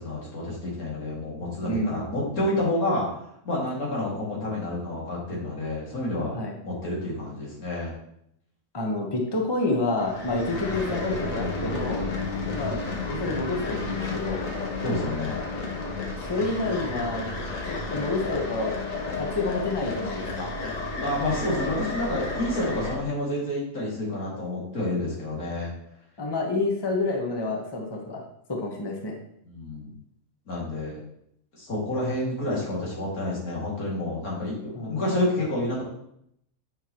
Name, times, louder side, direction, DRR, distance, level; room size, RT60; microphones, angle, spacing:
voice 1, 0.0-3.1 3.4-7.9 12.4-12.8 14.8-15.4 21.0-25.7 29.5-29.9 30.5-31.0 31.5-35.8, left 1 dB, 85° left, -5 dB, 2.9 m, -29 dB
voice 2, 1.6-2.2 6.3-6.5 8.7-12.1 12.5-14.5 16.2-17.3 17.7-20.5 26.2-28.2 28.5-29.2 34.7-35.0, left 2 dB, 20° left, 0 dB, 1.0 m, -29 dB
sound 1, 10.0-23.0, left 3 dB, 65° left, 1.6 m, -32 dB
9.2 x 5.7 x 3.0 m, 0.73 s
omnidirectional pair, 1.5 m